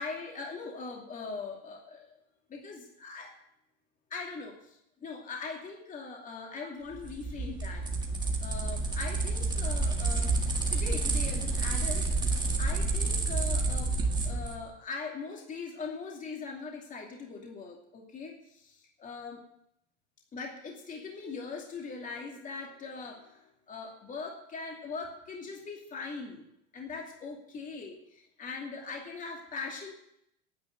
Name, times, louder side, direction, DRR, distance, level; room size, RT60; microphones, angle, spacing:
voice 1, 0.0-2.1 2.5-3.3 4.1-7.8 8.4-10.3 10.7-12.1 12.6-14.0 14.2-19.4 20.3-26.4 26.7-29.9, left 4 dB, 25° left, 0 dB, 2.6 m, -41 dB
sound 1, 6.9-14.6, right 3 dB, 15° right, 1.8 m, -29 dB
10.0 x 9.0 x 9.0 m, 0.77 s
supercardioid pair, 135°, 34 cm